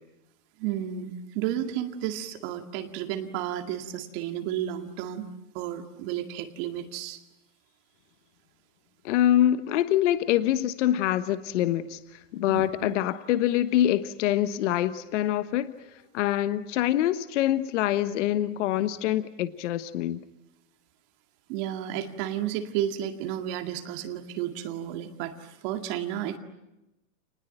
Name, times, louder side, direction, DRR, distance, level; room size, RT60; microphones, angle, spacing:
voice 1, 0.6-7.2 12.5-12.7 21.5-26.4, right 11 dB, 40° right, 6 dB, 2.2 m, -32 dB
voice 2, 9.0-12.0 12.3-15.7 16.1-20.2, left 12 dB, 50° left, 12 dB, 1.3 m, -25 dB
28.5 x 20.5 x 9.1 m, 0.95 s
hypercardioid pair, 150°, 45 cm